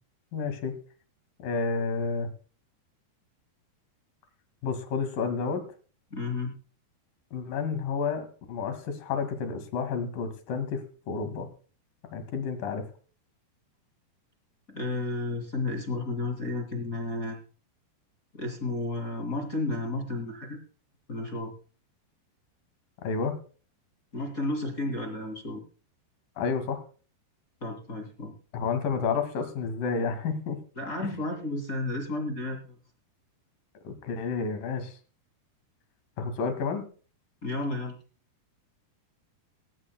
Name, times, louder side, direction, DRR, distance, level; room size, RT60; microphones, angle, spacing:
voice 1, 0.3-0.7 1.4-2.3 4.6-5.6 7.3-11.5 12.1-12.9 23.0-23.4 26.4-26.8 28.5-30.6 31.0-31.2 33.8-35.0 36.2-36.9, left 5 dB, 60° left, 8 dB, 3.4 m, -30 dB
voice 2, 6.1-6.5 14.7-17.4 18.3-20.6 21.1-21.5 24.1-25.6 27.6-28.3 30.8-32.8 37.4-38.0, left 2 dB, 25° left, 3 dB, 2.0 m, -32 dB
18.0 x 17.5 x 2.2 m, 0.39 s
omnidirectional pair, 4.9 m